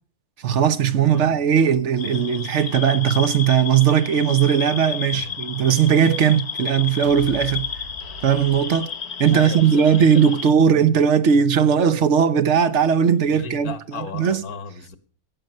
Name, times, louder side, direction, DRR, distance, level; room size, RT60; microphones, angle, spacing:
voice 1, 0.4-7.7 8.2-8.9 9.2-14.4, right 8 dB, 55° right, 1.1 m, -18 dB
voice 2, 1.1-1.4 5.1-5.4 9.3-10.3 13.3-15.0, left 5 dB, 80° left, 1.8 m, -35 dB
sound 1, 2.0-10.5, left 6 dB, 50° left, 1.2 m, -32 dB
sound 2, 7.0-9.4, left 2 dB, 75° right, 1.9 m, -40 dB
16.0 x 10.5 x 5.4 m
omnidirectional pair, 1.5 m